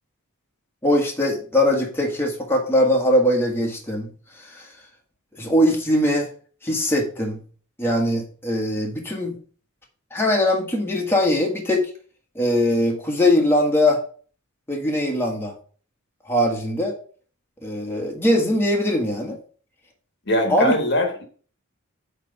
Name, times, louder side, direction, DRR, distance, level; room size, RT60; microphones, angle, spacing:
voice 1, 0.8-4.1 4.4-4.7 5.4-6.3 6.6-7.4 7.8-9.4 10.1-11.8 12.3-14.0 14.7-15.5 16.3-16.9 17.6-19.4 20.5-20.7, left 1 dB, 10° left, -1 dB, 1.5 m, -21 dB
voice 2, 20.3-21.2, left 1 dB, 55° left, 4 dB, 1.4 m, -21 dB
8.4 x 3.4 x 5.3 m, 0.41 s
head